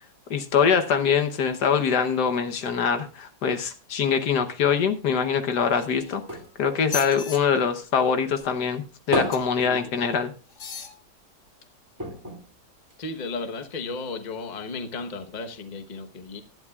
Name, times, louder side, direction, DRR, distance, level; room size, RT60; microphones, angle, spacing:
voice 1, 0.3-6.2 6.6-10.3, left 6 dB, 70° left, 8 dB, 1.5 m, -23 dB
sound 1, 5.4-8.0 8.4-10.6 11.0-11.1 11.4-11.5 12.0-13.5 14.1-14.2, equal, 10° right, 2.1 m, -34 dB
sound 2, 5.7-6.4 6.8-7.4 9.3-9.7 10.5-11.0 11.6-11.7, left 5 dB, 45° left, 1.5 m, -36 dB
voice 2, 13.0-16.4, left 3 dB, 30° left, 6 dB, 1.0 m, -34 dB
18.0 x 11.5 x 2.4 m, 0.33 s
omnidirectional pair, 1.9 m